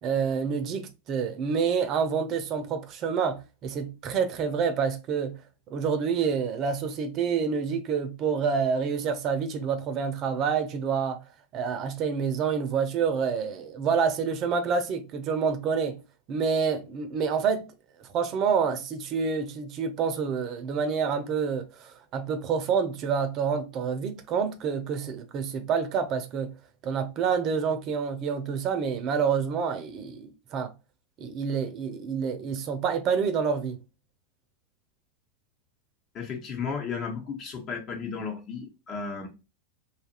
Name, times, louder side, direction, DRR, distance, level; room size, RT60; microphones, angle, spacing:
voice 1, 0.0-5.4 5.7-11.2 11.5-16.0 16.3-17.7 18.1-26.5 26.8-30.7 31.2-33.8, right 6 dB, 40° right, 0.6 m, -28 dB
voice 2, 36.1-39.3, left 5 dB, 40° left, 1.0 m, -34 dB
2.6 x 2.5 x 2.8 m
hypercardioid pair, 120°, 0 cm